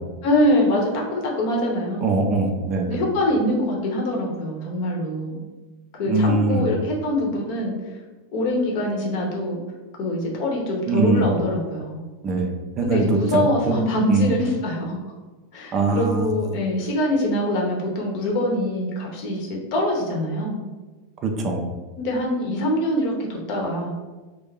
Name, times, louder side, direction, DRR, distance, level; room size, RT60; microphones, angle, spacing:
voice 1, 0.2-2.1 2.9-5.4 5.9-7.7 8.3-9.6 10.0-12.0 12.8-15.0 15.5-20.6 22.0-24.0, left 1 dB, 45° left, -1 dB, 0.8 m, -24 dB
voice 2, 2.0-3.0 6.1-6.7 10.9-11.3 12.2-12.5 12.8-13.8 14.1-14.3 15.7-16.3 21.2-21.7, right 3 dB, 30° right, 3 dB, 0.4 m, -22 dB
2.6 x 2.3 x 3.8 m, 1.2 s
figure-of-eight pair, 90°, 0 cm